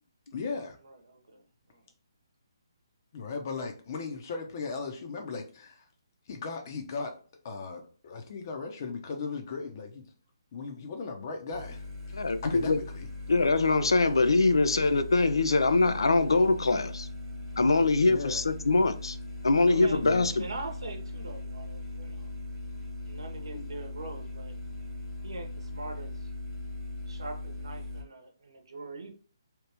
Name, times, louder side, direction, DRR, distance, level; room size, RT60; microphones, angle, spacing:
voice 1, 0.3-0.8 3.1-5.9 6.3-7.1 7.4-10.1 10.5-11.8 12.4-13.1 18.0-18.4 20.0-20.4, left 4 dB, 40° left, 0.7 m, -37 dB
voice 2, 0.8-1.4 1.7-1.8 19.7-22.3 23.0-24.5 25.2-26.3 27.1-29.1, right 3 dB, 75° right, 0.8 m, -42 dB
sound 1, 11.5-28.0, left 2 dB, 5° right, 0.9 m, -39 dB
voice 3, 12.1-12.8 13.3-17.1 17.6-19.2 19.4-20.4 23.5-23.6, left 3 dB, 80° left, 0.4 m, -23 dB
3.0 x 2.4 x 3.3 m
figure-of-eight pair, 150°, 2 cm